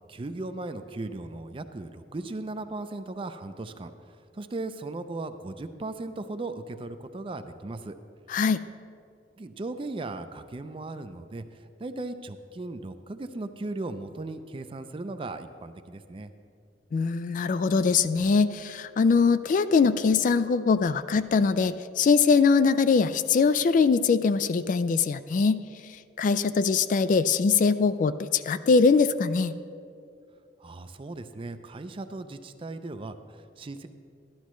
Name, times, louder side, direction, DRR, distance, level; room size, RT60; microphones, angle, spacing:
voice 1, 0.1-3.9 4.3-8.0 9.4-16.3 30.6-33.9, right 2 dB, 30° right, 10 dB, 0.4 m, -37 dB
voice 2, 8.3-8.6 16.9-25.6 26.2-29.6, left 5 dB, 45° left, 13 dB, 0.3 m, -22 dB
12.5 x 12.0 x 3.1 m, 2.4 s
head